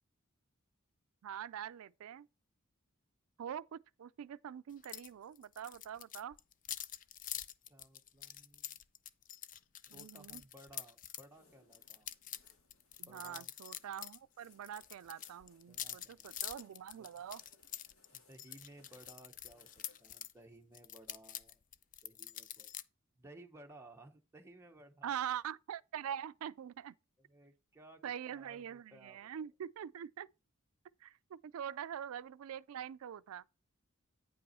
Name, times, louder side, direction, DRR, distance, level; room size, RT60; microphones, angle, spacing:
voice 1, 1.2-2.3 3.4-6.4 9.9-10.4 13.0-17.4 25.0-26.9 28.0-30.3 31.0-33.4, right 9 dB, 80° right, 0.4 m, -44 dB
sound 1, 4.8-5.1 5.3-11.2 11.7-14.2 14.4-20.3 20.7-22.8, left 11 dB, 40° left, 0.4 m, -46 dB
voice 2, 7.7-8.8 9.8-12.1 13.1-13.5 15.7-17.2 18.1-21.6 22.0-22.7 23.2-25.1 27.2-29.5, right 1 dB, 10° right, 0.7 m, -59 dB
sound 2, 11.2-20.3, left 3 dB, 70° left, 2.1 m, -70 dB
9.4 x 5.3 x 4.2 m
head